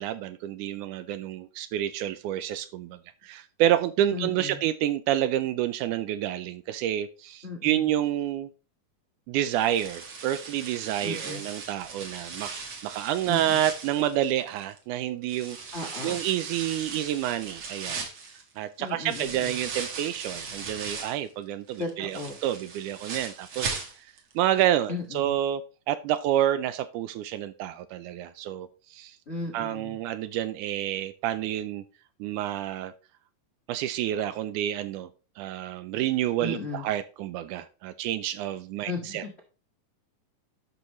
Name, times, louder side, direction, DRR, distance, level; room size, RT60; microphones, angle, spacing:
voice 1, 0.0-8.5 9.3-15.6 16.0-18.1 18.6-23.8 24.4-25.6 25.9-29.2 29.5-31.8 32.2-32.9 33.7-35.1 35.4-39.2, right 12 dB, 80° right, 1.9 m, -29 dB
voice 2, 4.1-4.6 7.4-7.9 11.0-11.4 13.3-13.6 15.7-16.2 18.8-19.6 21.8-22.4 24.9-25.3 29.3-30.0 36.4-36.9 38.8-39.4, left 2 dB, 55° left, 0.7 m, -35 dB
sound 1, 9.5-14.8 15.3-21.3 21.7-24.3 24.6-24.7 25.2-25.3, right 4 dB, 50° right, 1.8 m, -38 dB
11.5 x 5.6 x 3.0 m
omnidirectional pair, 3.8 m